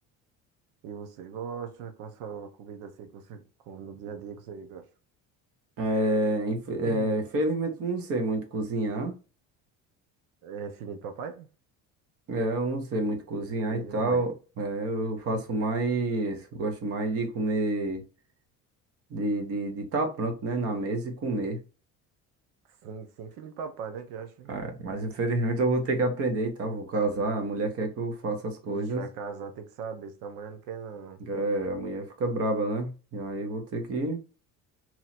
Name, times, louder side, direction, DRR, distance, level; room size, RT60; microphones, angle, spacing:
voice 1, 0.8-4.9 6.8-7.2 10.4-11.5 13.7-14.2 22.8-24.5 28.6-31.2, right 6 dB, 85° right, 1.0 m, -39 dB
voice 2, 5.8-9.1 12.3-18.0 19.1-21.6 24.5-29.0 31.2-34.2, right 2 dB, 45° right, 1.1 m, -28 dB
3.1 x 2.8 x 4.1 m
cardioid pair, 150°, 31 cm